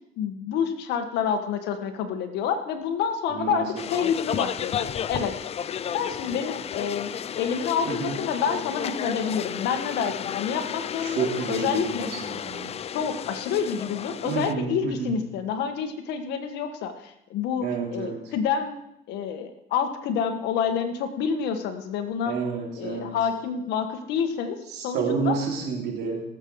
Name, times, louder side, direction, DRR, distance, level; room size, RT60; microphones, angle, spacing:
voice 1, 0.2-3.6 3.9-5.3 5.9-7.1 7.4-12.1 12.9-18.8 19.1-22.4 22.8-25.4, left 7 dB, 85° left, 7 dB, 1.5 m, -28 dB
voice 2, 3.3-3.6 7.8-8.1 11.0-12.7 14.2-15.2 17.6-18.3 22.3-23.2 24.7-26.2, right 5 dB, 70° right, -1 dB, 3.6 m, -29 dB
sound 1, 3.8-14.5, left 8 dB, 40° left, 0.4 m, -33 dB
18.0 x 7.8 x 4.8 m, 0.81 s
cardioid pair, 110°, 17 cm